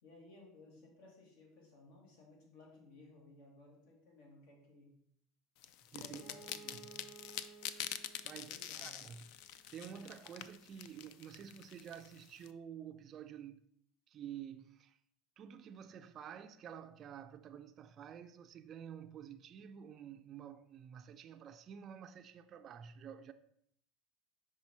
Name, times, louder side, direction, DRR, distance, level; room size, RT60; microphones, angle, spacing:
voice 1, 0.0-4.9 6.0-7.0 8.4-9.1, left 3 dB, 80° left, 2.3 m, -59 dB
sound 1, 5.6-12.5, left 11 dB, 65° left, 0.4 m, -46 dB
voice 2, 5.9-6.2 6.7-6.8 8.2-13.7 14.1-15.0 15.4-23.3, right 8 dB, 35° right, 0.3 m, -50 dB
Bowed string instrument, 6.1-9.8, right 5 dB, 30° left, 2.5 m, -58 dB
5.7 x 4.8 x 4.2 m
supercardioid pair, 140°, 0 cm